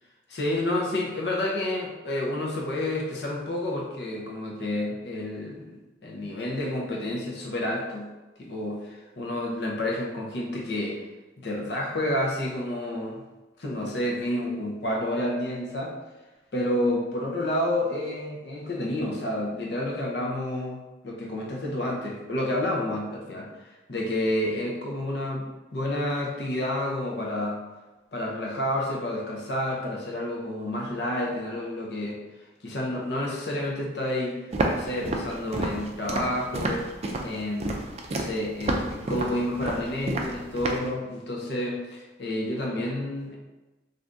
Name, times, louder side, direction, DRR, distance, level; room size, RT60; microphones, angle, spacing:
voice 1, 0.3-8.1 8.4-11.0 11.4-13.2 13.6-15.9 16.5-20.8 21.0-27.6 28.1-32.2 32.6-36.8 37.2-37.8 38.1-43.4, left 1 dB, 75° left, -2 dB, 0.7 m, -29 dB
Walk footsteps, 34.5-40.9, right 2 dB, 35° right, 0.3 m, -30 dB
2.6 x 2.6 x 3.4 m, 1.1 s
head